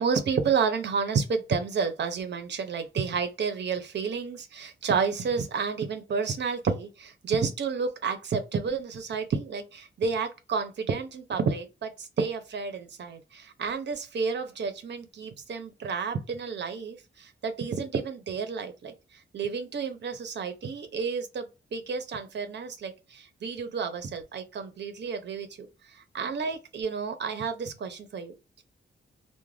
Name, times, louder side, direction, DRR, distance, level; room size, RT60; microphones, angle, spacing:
voice 1, 0.0-28.6, right 5 dB, 60° right, 0.6 m, -31 dB
2.4 x 2.1 x 3.2 m
wide cardioid pair, 145°, 20 cm